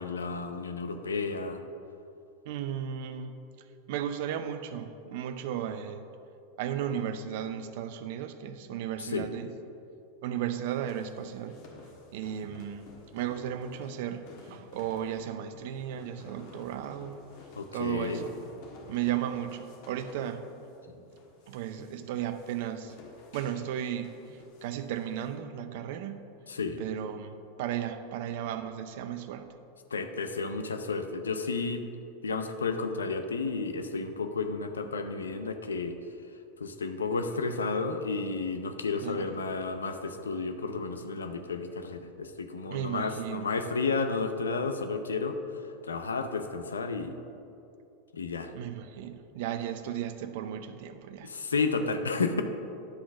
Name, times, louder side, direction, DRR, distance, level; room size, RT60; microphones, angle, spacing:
voice 1, 0.0-1.6 9.0-9.3 17.6-18.2 26.5-26.8 29.9-31.8 32.2-36.0 36.6-45.4 45.8-47.2 48.1-48.5 51.2-52.4, left 4 dB, 85° left, 7 dB, 0.5 m, -32 dB
voice 2, 2.5-3.4 3.9-6.0 6.6-9.5 10.2-11.6 12.1-14.2 14.5-17.2 17.7-18.3 18.9-20.4 21.5-22.9 23.3-24.1 24.6-26.4 26.8-29.5 39.0-39.3 42.7-43.5 48.5-51.3, right 10 dB, 60° right, 10 dB, 0.5 m, -35 dB
sound 1, 10.6-25.3, left 3 dB, 60° left, 1.4 m, -52 dB
9.7 x 4.0 x 5.9 m, 2.7 s
hypercardioid pair, 90°, 0 cm